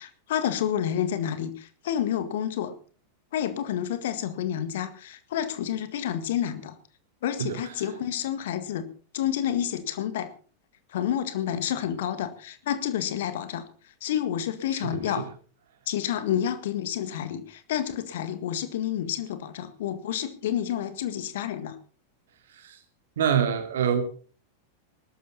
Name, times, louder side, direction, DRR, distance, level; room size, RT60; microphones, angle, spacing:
voice 1, 0.0-2.8 3.3-6.8 7.2-10.3 10.9-13.7 14.0-15.3 15.9-21.8, left 10 dB, 55° left, 11 dB, 1.8 m, -29 dB
voice 2, 23.2-24.0, right 8 dB, 60° right, 7 dB, 2.9 m, -24 dB
20.0 x 12.5 x 4.1 m, 0.39 s
figure-of-eight pair, 90°, 0 cm